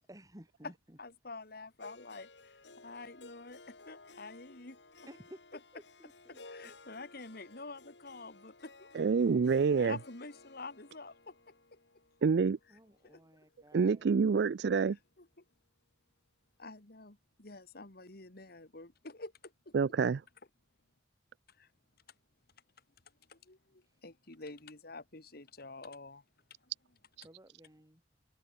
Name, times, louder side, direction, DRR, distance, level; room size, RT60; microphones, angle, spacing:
voice 1, 0.1-1.0 5.1-6.7 12.7-14.1 23.8-24.0 27.2-28.0, right 1 dB, 20° right, 3.5 m, -56 dB
voice 2, 1.0-4.8 6.5-8.9 9.8-11.2 13.0-13.2 15.2-15.3 16.6-19.7 21.5-21.7 23.3-26.2 26.6-26.7, left 3 dB, 60° left, 2.5 m, -48 dB
Harp, 1.8-13.9, left 3 dB, 80° left, 3.4 m, -57 dB
voice 3, 8.9-10.0 12.2-12.6 13.7-15.0 19.7-20.2, right 5 dB, 70° right, 0.4 m, -27 dB
head